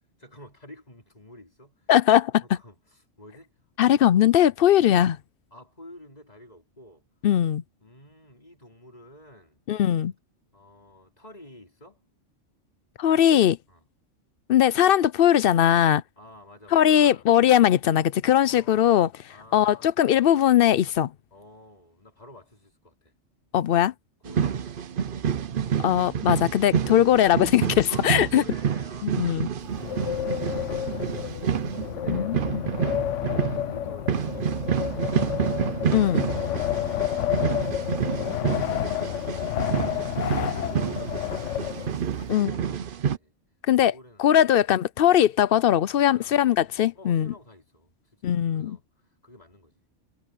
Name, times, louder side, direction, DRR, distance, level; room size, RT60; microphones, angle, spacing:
voice 1, 0.2-1.9 2.4-3.5 3.8-4.0 5.5-7.0 7.8-9.6 10.5-12.0 13.7-13.9 16.2-17.2 18.5-18.9 19.3-19.9 21.3-23.1 24.2-24.8 26.9-27.0 27.9-30.6 31.2-31.5 31.9-32.3 32.8-39.9 40.3-43.4 43.8-44.6 46.1-46.5 46.9-49.8, left 1 dB, 30° left, 5.3 m, -49 dB
voice 2, 1.9-2.4 3.8-5.2 7.2-7.6 9.7-10.1 13.0-13.6 14.5-16.0 16.7-19.1 19.5-21.1 23.5-23.9 25.8-28.4 29.0-29.5 32.1-32.6 35.9-36.3 42.3-42.5 43.7-43.9 44.2-47.3 48.2-48.8, left 11 dB, 60° left, 0.6 m, -20 dB
sound 1, 24.2-43.2, right 7 dB, 50° right, 0.8 m, -29 dB
Wind, 29.6-42.2, left 11 dB, 80° left, 1.0 m, -30 dB
omnidirectional pair, 1.3 m